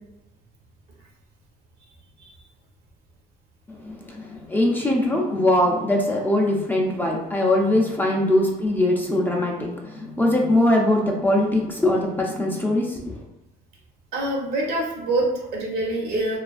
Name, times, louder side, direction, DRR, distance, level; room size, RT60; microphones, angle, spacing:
voice 1, 3.8-13.0, left 1 dB, 10° left, -2 dB, 0.4 m, -21 dB
voice 2, 14.1-16.4, right 2 dB, 70° right, -2 dB, 0.9 m, -25 dB
2.7 x 2.4 x 2.4 m, 0.95 s
cardioid pair, 110°, 17 cm